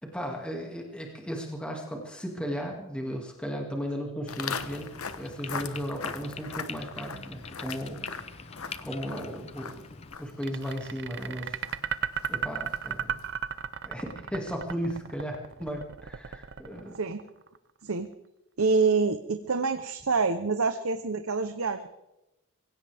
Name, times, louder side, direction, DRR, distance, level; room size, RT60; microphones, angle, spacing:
voice 1, 0.0-8.4 8.8-9.8 10.2-11.6 12.3-13.2 13.8-17.0, equal, 5° left, 0 dB, 2.3 m, -36 dB
Walk footsteps, 4.3-13.5, left 5 dB, 75° left, 1.2 m, -41 dB
sound 1, 4.6-10.2, left 5 dB, 30° left, 0.7 m, -44 dB
sound 2, 10.4-17.6, right 8 dB, 50° right, 0.6 m, -34 dB
voice 2, 18.6-21.9, right 4 dB, 70° right, 9 dB, 0.9 m, -26 dB
24.5 x 16.5 x 3.6 m, 0.93 s
head